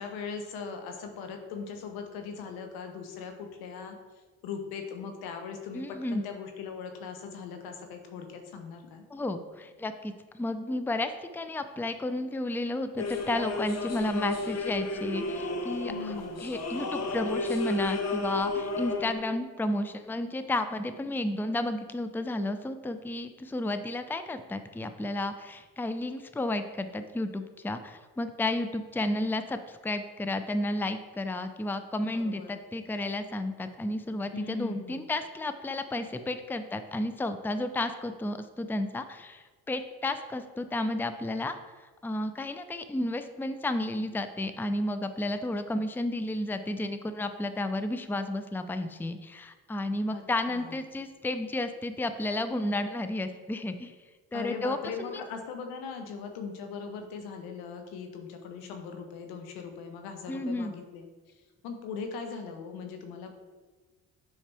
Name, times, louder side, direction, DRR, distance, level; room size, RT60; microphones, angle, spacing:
voice 1, 0.0-4.0 4.4-9.0 15.9-16.4 32.1-32.5 34.3-35.0 50.1-50.2 50.5-50.8 54.3-61.1 61.6-63.4, left 5 dB, 80° left, 5 dB, 1.0 m, -39 dB
voice 2, 5.7-6.3 9.1-41.6 42.0-53.9 54.3-55.2 60.3-60.7, left 1 dB, 5° left, 9 dB, 0.5 m, -32 dB
sound 1, 13.0-19.1, left 2 dB, 45° left, 1.0 m, -32 dB
7.3 x 5.7 x 3.4 m, 1.3 s
supercardioid pair, 60°, 36 cm